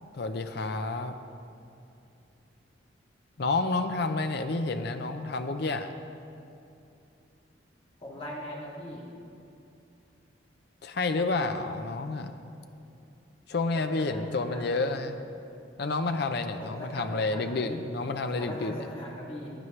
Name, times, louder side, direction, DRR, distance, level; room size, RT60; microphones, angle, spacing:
voice 1, 0.1-1.1 3.4-5.9 10.8-12.3 13.5-15.2 15.8-18.9, left 3 dB, 55° left, 8 dB, 0.6 m, -29 dB
voice 2, 8.0-9.1 13.7-15.1 16.6-17.8 18.3-19.5, equal, 30° left, -6 dB, 2.5 m, -41 dB
18.0 x 9.2 x 3.2 m, 2.7 s
head